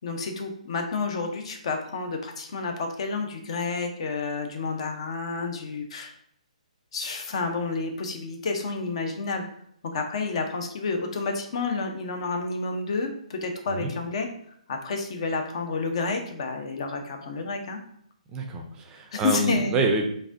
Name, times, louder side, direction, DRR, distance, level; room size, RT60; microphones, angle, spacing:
voice 1, 0.0-6.1 6.9-9.4 9.9-14.3 14.7-17.8 19.1-19.8, left 4 dB, 50° left, 4 dB, 0.6 m, -30 dB
voice 2, 18.3-20.0, right 2 dB, 20° right, 2 dB, 0.4 m, -27 dB
4.0 x 2.6 x 2.5 m, 0.68 s
figure-of-eight pair, 135°, 4 cm